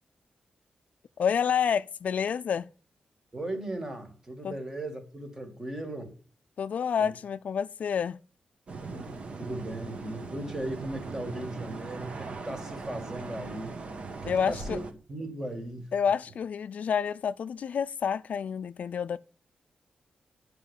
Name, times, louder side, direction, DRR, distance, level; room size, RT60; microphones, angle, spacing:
voice 1, 1.2-2.7 4.4-4.5 6.6-8.2 14.3-14.8 15.9-19.2, left 7 dB, 65° left, 0.4 m, -28 dB
voice 2, 3.3-6.1 7.0-7.1 8.8-13.8 14.2-14.8 15.1-15.9, right 1 dB, 20° right, 2.2 m, -37 dB
sound 1, 8.7-14.9, right 3 dB, 45° right, 1.3 m, -39 dB
9.6 x 5.0 x 7.2 m
wide cardioid pair, 135°, 3 cm